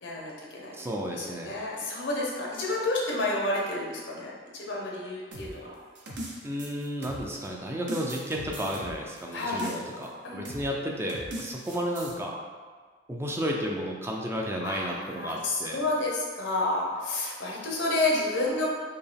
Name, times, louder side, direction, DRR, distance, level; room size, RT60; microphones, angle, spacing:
voice 1, 0.0-0.8 1.2-5.7 9.3-9.6 10.2-10.4 14.6-18.7, left 2 dB, 85° left, -3 dB, 1.0 m, -30 dB
voice 2, 0.7-1.5 6.4-12.3 13.1-15.8, equal, 15° right, -1 dB, 0.4 m, -32 dB
sound 1, 5.3-7.5 7.9-10.1 10.5-10.7 11.1-12.1, right 1 dB, 70° right, 0.7 m, -39 dB
4.4 x 2.9 x 3.4 m, 1.5 s
head